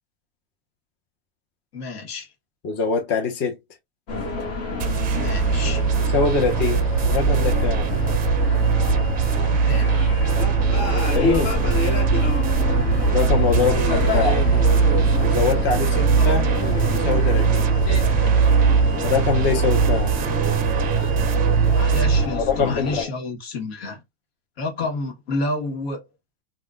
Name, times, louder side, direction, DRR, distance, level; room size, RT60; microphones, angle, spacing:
voice 1, 1.7-2.3 5.1-5.8 9.4-10.0 13.8-14.0 16.1-16.4 21.8-24.0 24.6-26.0, left 2 dB, 75° left, 1.2 m, -30 dB
voice 2, 2.6-3.6 6.1-6.8 7.1-7.9 11.1-11.5 13.1-14.4 15.2-16.5 16.9-17.7 19.0-20.1 22.3-23.1, left 5 dB, 35° left, 1.0 m, -23 dB
sound 1, 4.1-23.0, left 2 dB, 55° left, 1.4 m, -27 dB
sound 2, 4.8-22.3, right 6 dB, 30° right, 0.6 m, -20 dB
3.5 x 2.4 x 2.3 m
supercardioid pair, 130°, 31 cm